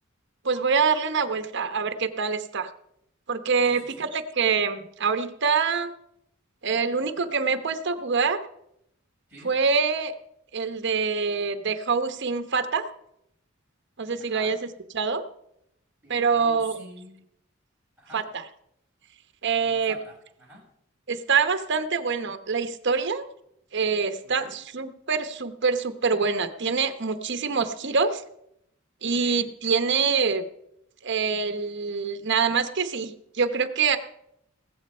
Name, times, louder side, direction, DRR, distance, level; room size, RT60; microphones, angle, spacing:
voice 1, 0.4-2.7 3.3-5.9 6.6-8.4 9.4-10.1 10.5-12.9 14.0-14.6 14.9-15.2 16.1-16.8 18.1-18.4 19.4-20.0 21.1-23.3 23.7-28.2 29.0-30.4 31.0-34.0, right 5 dB, 60° right, 9 dB, 0.9 m, -25 dB
voice 2, 3.6-4.1 9.3-9.6 14.2-14.7 16.0-17.2 18.0-18.3 19.6-20.6 24.2-24.6 29.2-29.5, equal, 5° right, -4 dB, 6.0 m, -48 dB
17.5 x 7.7 x 5.4 m, 0.77 s
head